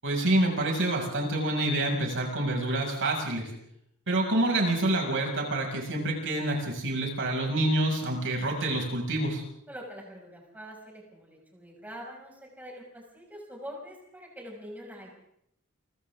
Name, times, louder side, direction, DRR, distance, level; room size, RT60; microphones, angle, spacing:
voice 1, 0.0-3.5 4.1-9.4, right 1 dB, 60° right, 0 dB, 6.3 m, -27 dB
voice 2, 9.7-15.2, equal, 10° right, -2 dB, 6.2 m, -44 dB
29.5 x 25.0 x 3.7 m, 0.75 s
head